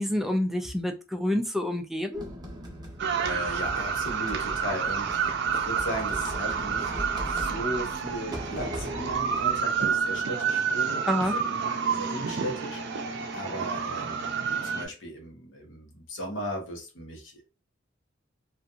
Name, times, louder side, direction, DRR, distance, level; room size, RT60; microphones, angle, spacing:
voice 1, 0.0-2.3 11.1-11.3, left 1 dB, ahead, 0.3 m, -28 dB
sound 1, 2.1-10.2, equal, 20° right, 0.7 m, -39 dB
sound 2, 3.0-14.9, right 6 dB, 60° right, 0.5 m, -29 dB
voice 2, 3.2-7.0 7.2-11.0 11.3-17.5, equal, 65° left, 0.9 m, -37 dB
2.6 x 2.4 x 2.3 m
head